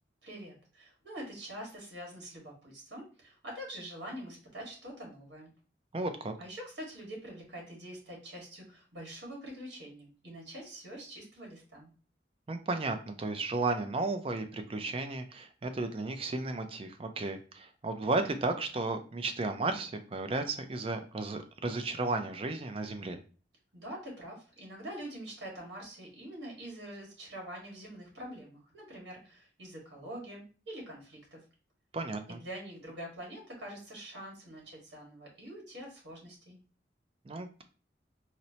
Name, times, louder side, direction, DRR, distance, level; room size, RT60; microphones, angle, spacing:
voice 1, 0.2-5.5 6.4-11.9 23.7-31.4 32.3-36.6, right 1 dB, 75° right, -1 dB, 1.5 m, -45 dB
voice 2, 5.9-6.3 12.5-23.2 31.9-32.4 37.3-37.6, right 3 dB, 30° right, 8 dB, 0.4 m, -34 dB
4.2 x 2.0 x 2.7 m, 0.37 s
head